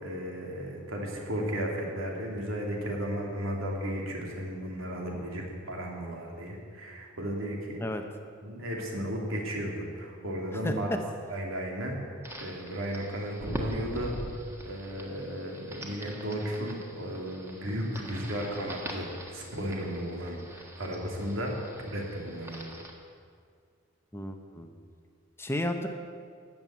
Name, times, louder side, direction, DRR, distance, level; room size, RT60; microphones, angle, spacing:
voice 1, 0.0-7.8 8.4-10.9 11.3-11.9 12.4-14.1 14.6-21.5 21.8-22.7, equal, 90° right, 0 dB, 2.8 m, -34 dB
voice 2, 10.6-11.0 24.1-24.7 25.4-25.9, left 1 dB, 10° left, 6 dB, 0.8 m, -32 dB
sound 1, 12.2-22.9, equal, 15° right, 1.5 m, -43 dB
13.5 x 7.4 x 9.5 m, 2.1 s
head